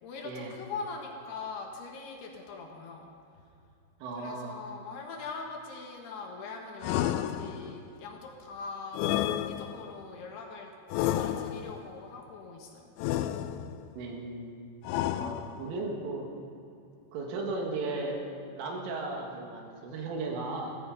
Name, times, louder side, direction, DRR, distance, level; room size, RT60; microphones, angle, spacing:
voice 1, 0.0-3.4 4.1-10.7 11.0-12.9, left 4 dB, 65° left, 1 dB, 3.1 m, -42 dB
voice 2, 4.0-4.6 14.0-14.5 15.2-16.3 17.1-18.2 18.5-20.8, right 3 dB, 85° right, 0 dB, 4.5 m, -36 dB
sound 1, 6.8-7.9 8.9-10.0 10.9-11.9 13.0-13.9 14.8-15.8, left 12 dB, 85° left, 2.7 m, -31 dB
16.0 x 14.5 x 5.5 m, 2.6 s
omnidirectional pair, 5.6 m